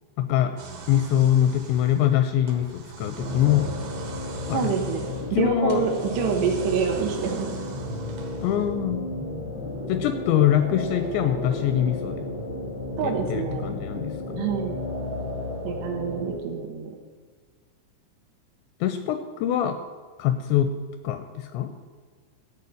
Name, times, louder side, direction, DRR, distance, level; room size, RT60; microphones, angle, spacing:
voice 1, 0.2-0.5 0.9-3.7 4.5-4.7 5.4-5.8 8.4-9.0 9.9-12.3 13.0-14.5 18.8-19.8 20.2-20.7 21.0-21.7, left 11 dB, 85° left, 8 dB, 2.6 m, -23 dB
sound 1, 0.6-8.9, right 5 dB, 90° right, 4.0 m, -42 dB
sound 2, 3.2-16.4, left 2 dB, 45° right, 1.6 m, -33 dB
voice 2, 4.5-7.5 13.0-13.7 14.4-14.7 15.6-17.0, right 6 dB, 75° right, 1 dB, 3.0 m, -27 dB
13.5 x 4.6 x 8.4 m, 1.5 s
omnidirectional pair, 5.4 m